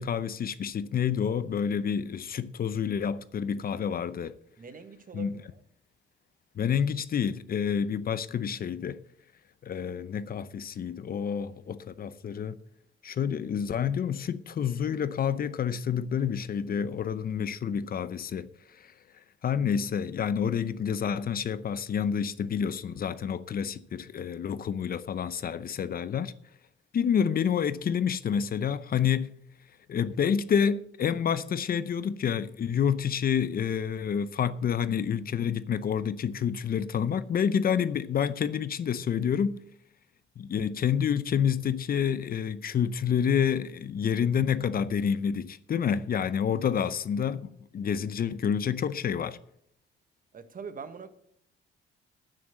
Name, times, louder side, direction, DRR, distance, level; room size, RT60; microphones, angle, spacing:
voice 1, 0.0-4.3 5.1-5.3 6.6-9.0 9.6-12.6 13.0-18.5 18.8-18.9 19.4-26.3 26.9-29.3 29.9-39.6 40.4-49.4, left 7 dB, 50° left, 0.7 m, -28 dB
voice 2, 4.6-5.6 50.3-51.1, right 5 dB, 45° right, 1.3 m, -43 dB
9.3 x 9.3 x 7.6 m
cardioid pair, 90°, 20 cm